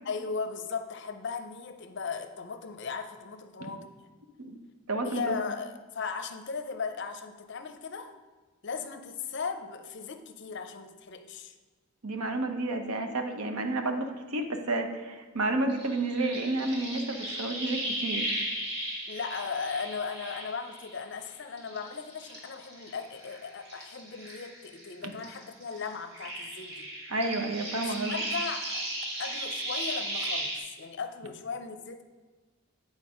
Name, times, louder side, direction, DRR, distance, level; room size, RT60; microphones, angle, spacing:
voice 1, 0.0-3.9 5.0-8.1 8.6-11.5 19.1-26.9 28.1-28.9 29.2-32.0, left 5 dB, 55° left, 8 dB, 0.5 m, -37 dB
voice 2, 4.9-5.4 12.0-18.2 25.0-25.1 27.1-28.2, right 2 dB, 85° right, 5 dB, 0.8 m, -31 dB
sound 1, 15.7-21.2 21.6-24.9 25.2-30.6, right 1 dB, 50° right, 2.3 m, -36 dB
8.9 x 4.1 x 5.0 m, 1.3 s
head